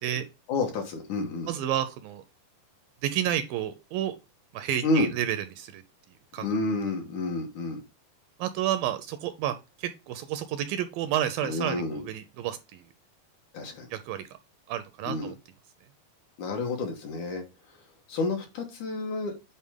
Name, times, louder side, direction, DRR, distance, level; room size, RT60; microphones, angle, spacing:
voice 1, 0.5-1.5 4.8-5.1 6.4-7.8 11.4-12.0 13.5-13.9 15.1-15.3 16.4-17.4 18.1-19.5, left 2 dB, 65° left, 2.3 m, -29 dB
voice 2, 1.5-2.2 3.0-4.1 4.5-5.8 6.3-6.5 8.4-12.8 13.9-14.3 14.7-15.3, right 11 dB, 80° right, 2.2 m, -30 dB
8.6 x 4.1 x 3.6 m
omnidirectional pair, 4.4 m